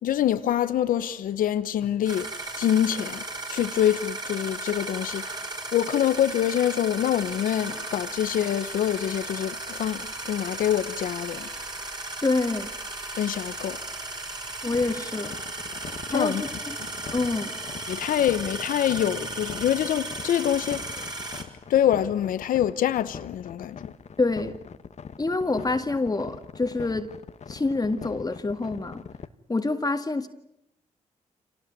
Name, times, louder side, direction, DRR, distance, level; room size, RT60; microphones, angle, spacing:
voice 1, 0.0-2.3 2.6-5.2 5.7-11.5 13.2-13.8 16.1-16.4 17.9-21.1 21.7-23.9, left 10 dB, 80° left, 1.0 m, -25 dB
sound 1, 2.1-21.4, right 2 dB, 30° right, 5.6 m, -35 dB
voice 2, 12.2-12.7 14.6-15.4 16.1-16.8 17.1-17.6 24.2-24.6 25.2-27.1 27.5-29.0 29.5-30.3, left 3 dB, 25° left, 2.0 m, -26 dB
sound 2, 14.7-29.3, left 6 dB, 55° left, 1.3 m, -42 dB
26.5 x 18.5 x 9.4 m
supercardioid pair, 60°, 14 cm